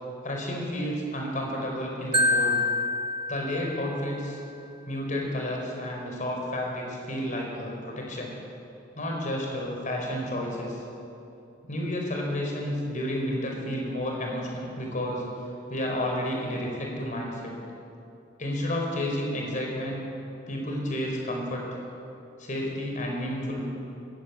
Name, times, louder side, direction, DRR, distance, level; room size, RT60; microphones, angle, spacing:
voice 1, 0.2-2.6 3.3-4.4 4.9-8.3 8.9-10.8 11.7-15.2 15.7-17.5 18.4-20.0 20.5-21.6 22.4-23.7, left 1 dB, 45° left, 0 dB, 5.0 m, -31 dB
Marimba xylophone, 2.1-4.2, left 1 dB, 25° right, 1.5 m, -26 dB
22.5 x 20.5 x 8.5 m, 2.8 s
head